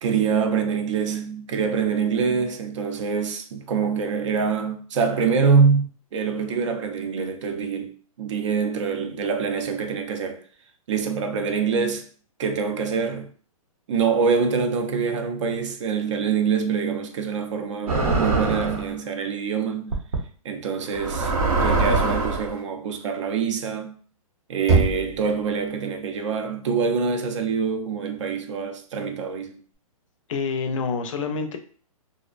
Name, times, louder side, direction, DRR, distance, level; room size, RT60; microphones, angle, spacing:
voice 1, 0.0-7.9 8.2-10.4 10.9-12.1 12.4-13.3 13.9-19.9 20.4-24.0 24.5-29.6, right 5 dB, 55° right, 0.4 m, -25 dB
sound 1, 17.9-18.9 19.9-20.2 20.9-22.5, right 3 dB, 80° right, 0.8 m, -23 dB
Knock, 24.7-25.6, right 3 dB, 15° right, 0.7 m, -22 dB
voice 2, 30.3-31.6, left 5 dB, 60° left, 0.5 m, -27 dB
2.5 x 2.1 x 2.4 m
hypercardioid pair, 150°, 19 cm